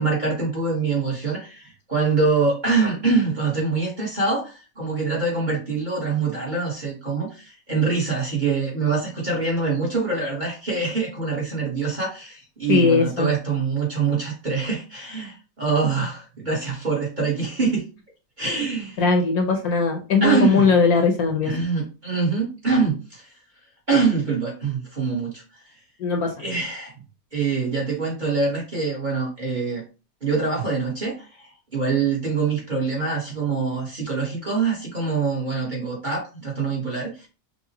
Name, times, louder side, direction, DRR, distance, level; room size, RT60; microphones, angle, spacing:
voice 1, 0.0-17.8 18.4-19.0 20.2-20.7 21.4-23.3 23.9-25.4 26.4-26.9 27.3-29.8 30.2-37.3, right 4 dB, 35° right, -3 dB, 1.0 m, -24 dB
voice 2, 12.7-13.3 19.0-21.5 26.0-26.5, left 4 dB, 65° left, 3 dB, 1.1 m, -19 dB
5.7 x 2.2 x 2.8 m, 0.32 s
omnidirectional pair, 1.9 m